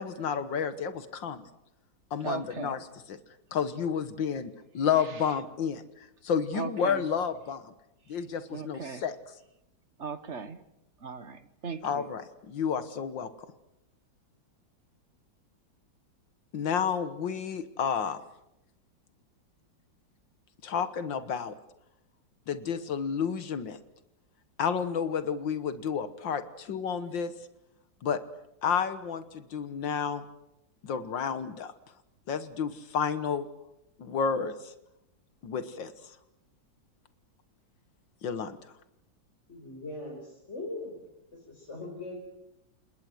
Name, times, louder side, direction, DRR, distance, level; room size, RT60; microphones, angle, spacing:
voice 1, 0.0-1.5 2.1-3.2 3.5-5.8 6.2-7.7 8.1-9.2 11.8-13.3 16.5-18.2 20.6-21.5 22.5-23.8 24.6-27.3 28.0-28.2 28.6-30.2 30.8-31.7 32.3-33.5 34.0-34.7 35.4-35.9 38.2-38.6, left 7 dB, 75° left, 12 dB, 2.0 m, -31 dB
voice 2, 2.2-2.7 6.5-7.0 8.5-9.0 10.0-10.6 11.0-12.1, right 5 dB, 40° right, 13 dB, 1.3 m, -37 dB
voice 3, 39.5-40.9 41.3-42.1, left 2 dB, 35° left, -3 dB, 5.5 m, -40 dB
28.5 x 20.0 x 7.9 m, 0.85 s
omnidirectional pair, 2.0 m